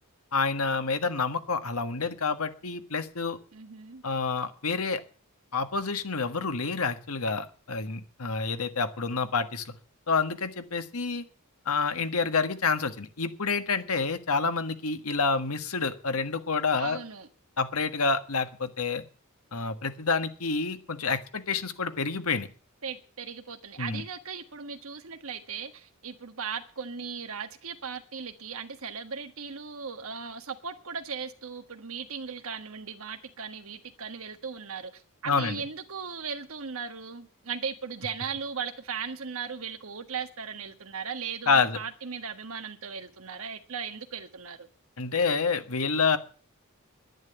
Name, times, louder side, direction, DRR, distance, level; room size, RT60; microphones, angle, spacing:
voice 1, 0.3-3.4 4.0-5.0 5.5-9.7 10.1-11.2 11.6-17.0 17.6-19.0 19.5-22.5 23.8-24.0 35.2-35.6 41.5-41.8 45.0-46.2, left 4 dB, 80° left, 1.6 m, -28 dB
voice 2, 3.5-4.0 16.8-17.3 22.8-44.7, right 6 dB, 70° right, 1.5 m, -37 dB
11.0 x 10.5 x 8.0 m
head